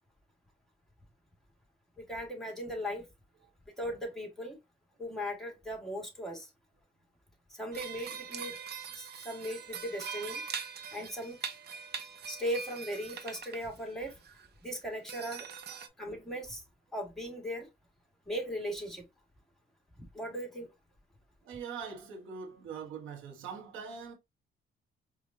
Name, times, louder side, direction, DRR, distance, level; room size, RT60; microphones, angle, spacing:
voice 1, 2.0-3.1 3.8-4.6 5.0-6.5 7.5-8.6 8.9-10.4 10.9-11.4 12.3-14.2 14.6-16.6 16.9-17.7 18.3-19.0 20.1-20.7, equal, ahead, 1.9 m, -38 dB
sound 1, 7.7-13.7 14.1-14.5 14.7-14.8 15.1-15.9, right 6 dB, 55° right, 0.8 m, -42 dB
voice 2, 21.4-24.1, right 6 dB, 90° right, 1.2 m, -42 dB
4.8 x 2.5 x 2.6 m
cardioid pair, 90°, 20 cm